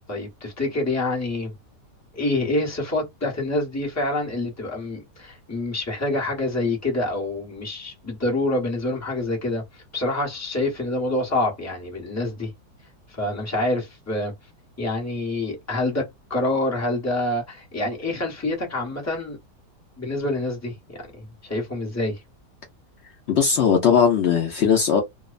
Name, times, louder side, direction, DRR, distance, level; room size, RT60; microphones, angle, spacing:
voice 1, 0.1-1.5 2.1-12.5 13.1-14.3 14.8-19.4 20.0-22.2, left 2 dB, 15° left, 0.7 m, -27 dB
voice 2, 23.3-25.0, left 7 dB, 90° left, 0.5 m, -18 dB
2.9 x 2.0 x 2.4 m
omnidirectional pair, 1.8 m